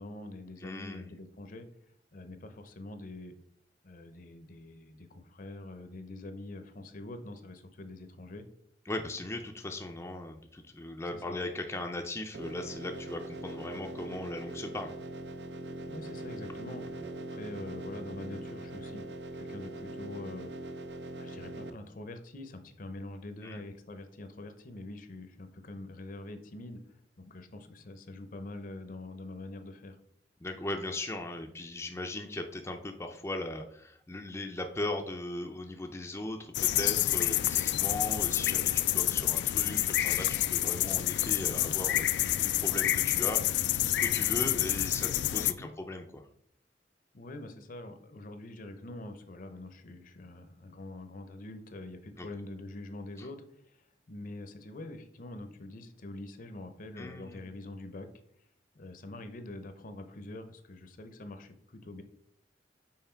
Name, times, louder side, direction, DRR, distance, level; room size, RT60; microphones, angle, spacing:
voice 1, 0.0-1.7 2.1-3.3 3.8-8.4 11.1-11.4 15.9-16.8 17.2-19.0 19.4-20.5 21.1-26.8 27.2-30.0 45.5-45.7 47.1-58.1 58.7-62.0, left 2 dB, 50° left, 9 dB, 0.7 m, -44 dB
voice 2, 0.6-1.1 8.9-14.9 23.4-23.6 30.4-46.2 52.2-52.3 53.2-53.3 57.0-57.5, left 2 dB, 15° left, 3 dB, 0.5 m, -38 dB
sound 1, 12.3-21.7, right 1 dB, 75° right, 0.6 m, -41 dB
sound 2, 36.5-45.5, left 14 dB, 75° left, 0.3 m, -28 dB
5.7 x 4.5 x 4.4 m, 0.68 s
head